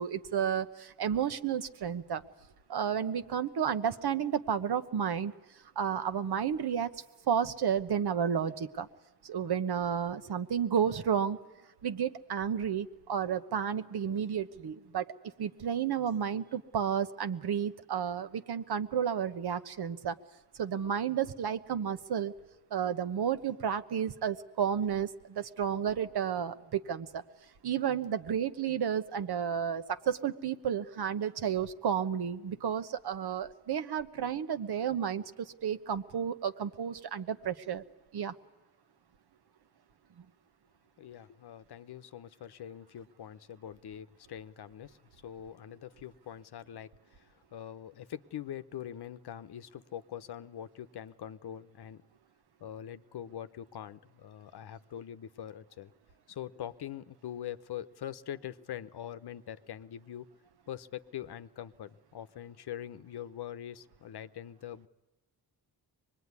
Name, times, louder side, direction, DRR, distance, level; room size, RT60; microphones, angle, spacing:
voice 1, 0.0-2.2 2.7-5.3 5.8-6.9 7.3-8.9 9.2-11.4 11.8-15.1 15.4-20.2 20.6-22.3 22.7-27.2 27.6-37.8 38.1-38.3, right 8 dB, 70° right, 11 dB, 1.1 m, -32 dB
voice 2, 41.0-45.0 45.2-47.2 47.5-52.0 52.6-55.9 56.3-60.3 60.7-64.9, left 10 dB, 75° left, 12 dB, 0.9 m, -43 dB
24.0 x 20.5 x 9.7 m, 1.1 s
cardioid pair, 75°, 40 cm